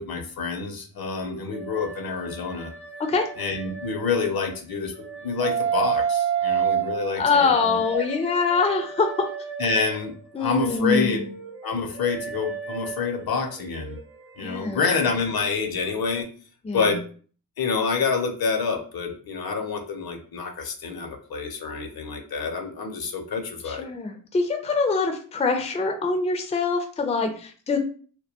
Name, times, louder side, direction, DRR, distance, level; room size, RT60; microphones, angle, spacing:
voice 1, 0.0-2.7 3.4-8.0 9.6-11.2 11.6-14.0 14.4-16.3 16.7-17.0 17.6-23.9, left 5 dB, 70° left, 5 dB, 0.6 m, -27 dB
sound 1, 1.0-4.6 5.0-10.2 10.6-16.2, right 8 dB, 40° right, 0.8 m, -32 dB
voice 2, 7.2-9.1 10.3-11.3 14.4-14.9 16.6-16.9 23.6-27.8, left 4 dB, 20° left, 5 dB, 0.4 m, -24 dB
2.2 x 2.2 x 2.7 m, 0.42 s
cardioid pair, 65°, 38 cm